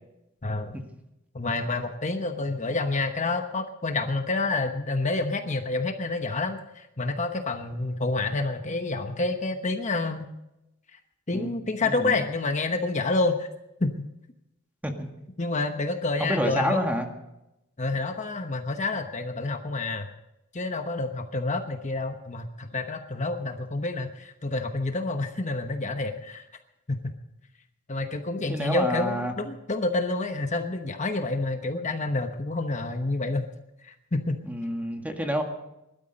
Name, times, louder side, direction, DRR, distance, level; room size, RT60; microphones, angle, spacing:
voice 1, 0.4-0.8 1.3-10.3 11.3-13.5 13.8-14.0 15.4-16.8 17.8-20.1 20.5-26.4 26.9-27.1 27.9-33.4 33.8-34.4, left 2 dB, 35° left, 5 dB, 1.1 m, -28 dB
voice 2, 11.8-12.1 14.8-15.1 16.2-17.1 28.4-29.3 34.5-35.4, equal, 10° right, 3 dB, 1.8 m, -28 dB
20.0 x 13.0 x 5.3 m, 0.90 s
head